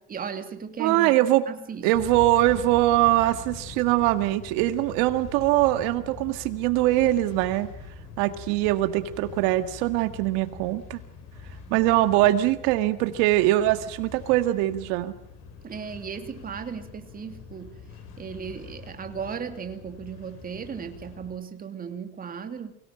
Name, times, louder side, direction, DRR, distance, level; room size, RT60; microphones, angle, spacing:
voice 1, 0.1-1.9 15.6-17.8 18.2-22.7, right 6 dB, 30° right, 7 dB, 2.6 m, -36 dB
voice 2, 0.8-1.4 1.8-7.7 8.2-11.0 11.7-15.1, right 15 dB, 85° right, 10 dB, 1.9 m, -22 dB
sound 1, 1.9-21.4, left 5 dB, 60° left, 6.7 m, -44 dB
24.0 x 17.5 x 9.0 m, 0.76 s
cardioid pair, 125°, 30 cm